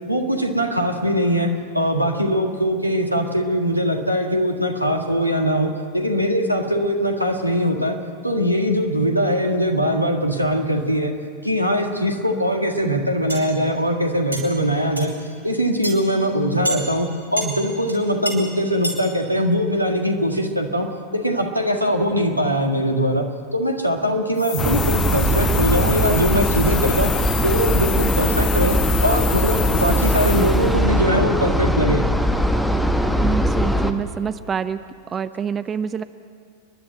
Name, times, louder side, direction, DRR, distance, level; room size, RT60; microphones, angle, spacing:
voice 1, 0.1-8.0 8.2-11.1 11.4-15.1 15.4-20.9 21.1-23.3 23.5-27.1 27.4-32.0, equal, 90° right, 3 dB, 1.8 m, -21 dB
sound 1, 13.3-13.5 14.3-14.4 15.0-15.1 15.8-15.9 16.6-16.8 17.4-17.5 17.9-18.0 18.3-18.4 18.8-19.0, right 1 dB, 80° left, 4.7 m, -26 dB
sound 2, 24.4-30.8, left 15 dB, 45° left, 0.7 m, -29 dB
sound 3, 24.6-33.9, equal, ahead, 1.1 m, -20 dB
voice 2, 33.2-34.8 35.1-36.0, right 7 dB, 20° right, 13 dB, 0.6 m, -26 dB
29.0 x 11.5 x 9.1 m, 2.3 s
figure-of-eight pair, 90°, 0 cm